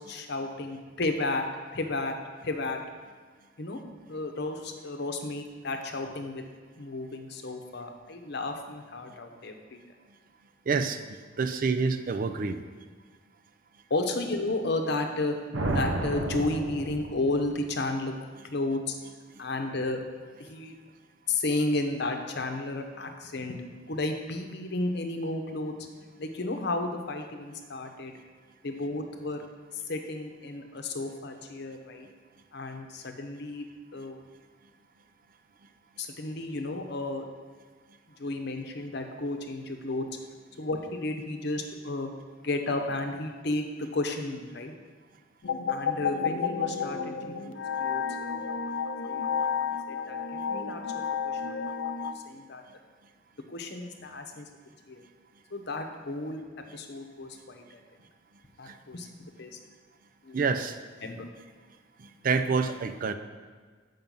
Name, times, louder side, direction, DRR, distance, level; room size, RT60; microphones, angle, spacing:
voice 1, 0.1-1.4 1.7-2.1 2.4-2.8 3.6-3.8 4.1-6.4 6.8-9.8 13.9-15.4 15.6-18.1 18.4-19.0 19.4-20.0 20.5-20.7 21.3-23.6 23.9-25.7 26.2-28.1 28.6-29.4 29.9-32.1 32.5-33.6 33.9-34.2 36.0-37.2 38.2-40.1 40.6-42.1 42.4-44.7 45.7-48.4 49.1-49.2 49.6-50.8 51.2-51.6 52.3-52.6 53.5-54.5 54.9-55.0 55.5-56.4 56.7-57.8 58.6-59.5 60.2-60.4 61.0-61.3, left 2 dB, 60° left, 5 dB, 0.8 m, -33 dB
voice 2, 10.7-11.0 11.4-12.6 58.7-58.8 60.3-60.7 62.0-63.1, right 4 dB, 45° right, 9 dB, 0.4 m, -27 dB
sound 1, 15.5-17.5, right 2 dB, 85° right, 0.7 m, -31 dB
sound 2, 45.4-52.1, left 6 dB, 75° left, 0.5 m, -31 dB
7.4 x 5.4 x 5.4 m, 1.5 s
head